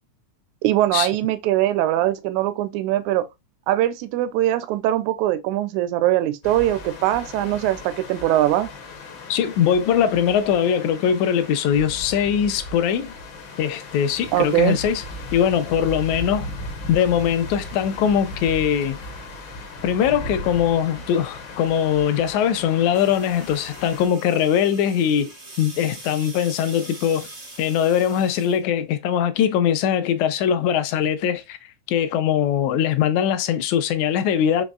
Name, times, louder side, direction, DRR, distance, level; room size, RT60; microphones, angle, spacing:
voice 1, 0.6-3.3 3.7-8.7 14.3-14.8, right 13 dB, 85° right, 1.9 m, -21 dB
sound 1, 6.4-24.1, left 2 dB, 65° left, 1.1 m, -37 dB
voice 2, 9.3-13.1 13.6-15.0 15.3-16.5 16.9-19.0 19.8-25.3 25.6-27.3 27.6-31.6 31.9-34.6, left 9 dB, 85° left, 1.9 m, -21 dB
sound 2, 22.9-28.6, right 2 dB, 65° right, 0.5 m, -42 dB
5.2 x 3.0 x 2.4 m
omnidirectional pair, 3.3 m